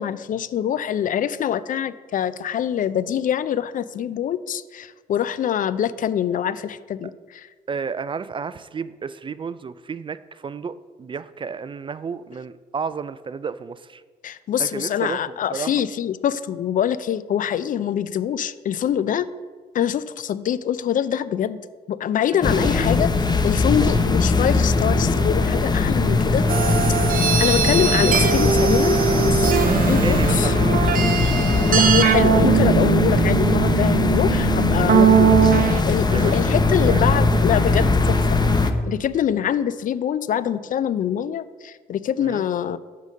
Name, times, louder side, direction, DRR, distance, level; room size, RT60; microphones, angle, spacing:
voice 1, 0.0-7.5 14.2-19.3 19.7-21.6 21.9-23.1 23.4-27.1 27.4-29.5 29.9-30.5 31.7-38.4 38.9-42.8, left 9 dB, 50° left, 16 dB, 0.4 m, -24 dB
voice 2, 7.7-14.0 14.6-15.7 22.3-22.7 29.0-29.2 29.6-31.4 36.1-36.5 36.9-37.0 42.2-42.4, right 5 dB, 30° right, 15 dB, 0.3 m, -32 dB
sound 1, 22.4-38.7, left 3 dB, 25° left, 0.8 m, -20 dB
sound 2, 26.5-35.8, right 8 dB, 50° right, 0.8 m, -20 dB
7.1 x 4.0 x 6.4 m, 1.4 s
hypercardioid pair, 55°, 18 cm